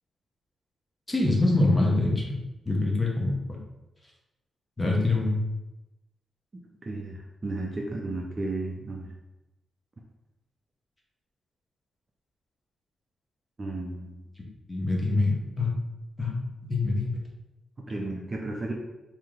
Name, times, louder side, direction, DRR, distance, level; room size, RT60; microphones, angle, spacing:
voice 1, 1.1-2.4 2.7-3.4 4.8-5.3 14.7-15.7 16.2-16.4 16.6-17.1, left 2 dB, 15° left, -2 dB, 0.7 m, -24 dB
voice 2, 6.8-9.1 13.6-14.2 17.9-18.7, right 2 dB, 25° right, 0 dB, 0.4 m, -33 dB
3.1 x 2.8 x 3.6 m, 0.99 s
wide cardioid pair, 160°, 0 cm